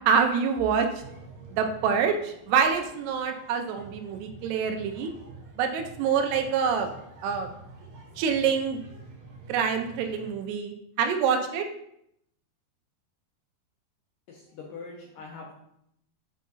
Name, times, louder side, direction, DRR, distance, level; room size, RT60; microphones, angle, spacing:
voice 1, 0.1-0.9 1.5-5.1 5.6-6.9 7.2-7.5 8.2-8.8 9.5-11.7, right 6 dB, 85° right, 5 dB, 2.7 m, -26 dB
sound 1, 0.9-10.3, right 3 dB, 70° right, 2.2 m, -48 dB
voice 2, 14.3-15.5, left 4 dB, 75° left, -1 dB, 2.0 m, -42 dB
7.6 x 3.8 x 3.9 m, 0.75 s
omnidirectional pair, 4.7 m